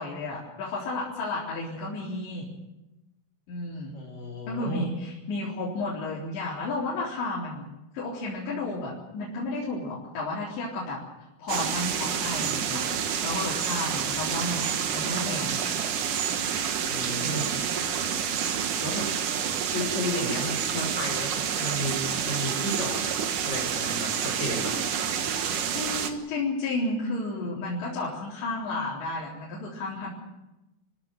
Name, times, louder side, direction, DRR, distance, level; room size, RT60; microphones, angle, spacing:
voice 1, 0.0-2.5 3.5-3.9 4.5-7.7 7.9-11.0 11.4-15.6 17.2-17.6 25.7-30.1, left 2 dB, 60° left, -7 dB, 6.1 m, -32 dB
voice 2, 3.9-4.9 16.9-17.5 18.8-19.1 19.7-23.1 23.3-24.8, left 1 dB, 20° left, 0 dB, 5.8 m, -33 dB
sound 1, 11.5-26.1, right 8 dB, 65° right, 2.1 m, -28 dB
29.5 x 14.5 x 7.8 m, 1.0 s
omnidirectional pair, 5.7 m